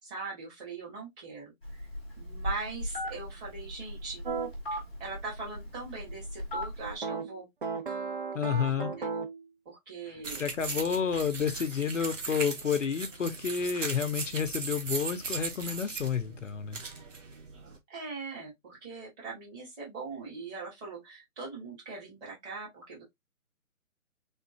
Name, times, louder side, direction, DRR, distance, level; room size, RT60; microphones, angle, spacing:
voice 1, 0.0-1.8 2.2-4.2 4.7-7.5 8.5-9.1 9.7-10.4 17.9-23.0, right 4 dB, 15° right, 2.1 m, -41 dB
Telephone, 1.6-7.0, equal, 5° left, 0.7 m, -38 dB
sound 1, 4.2-4.5 7.0-9.4, right 5 dB, 35° right, 0.8 m, -35 dB
voice 2, 8.3-8.9 10.1-16.8, left 7 dB, 55° left, 0.7 m, -30 dB
sound 2, 10.2-17.8, right 4 dB, 60° right, 1.5 m, -38 dB
3.9 x 3.6 x 2.8 m
figure-of-eight pair, 150°, 43 cm